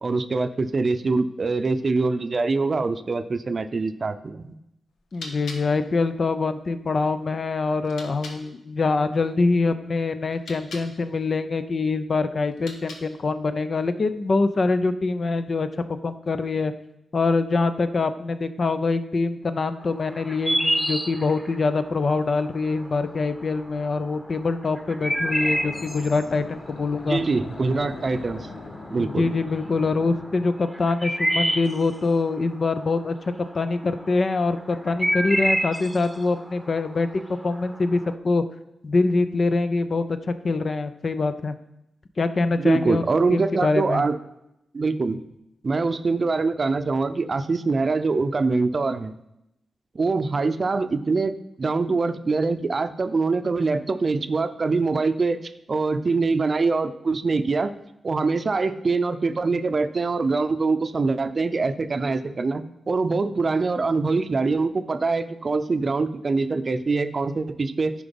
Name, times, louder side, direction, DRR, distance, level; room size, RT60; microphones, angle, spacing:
voice 1, 0.0-4.5 27.1-28.5 28.9-29.2 42.6-44.2 44.7-45.2 45.6-49.1 49.9-55.4 55.7-57.7 58.0-67.9, right 3 dB, 45° right, 11 dB, 0.6 m, -24 dB
sound 1, 4.9-8.4 10.2-10.9 12.5-13.3, left 3 dB, 90° left, 1.2 m, -43 dB
voice 2, 5.1-16.7 17.1-27.2 29.0-38.0 38.2-38.4 38.8-41.5 42.2-43.0 43.3-44.0, left 3 dB, 50° left, 10 dB, 0.6 m, -24 dB
sound 2, 19.8-38.1, equal, 5° right, 1.0 m, -29 dB
sound 3, 21.8-30.5, left 3 dB, 70° left, 1.1 m, -43 dB
9.9 x 4.9 x 5.3 m, 0.85 s
cardioid pair, 55°, 0 cm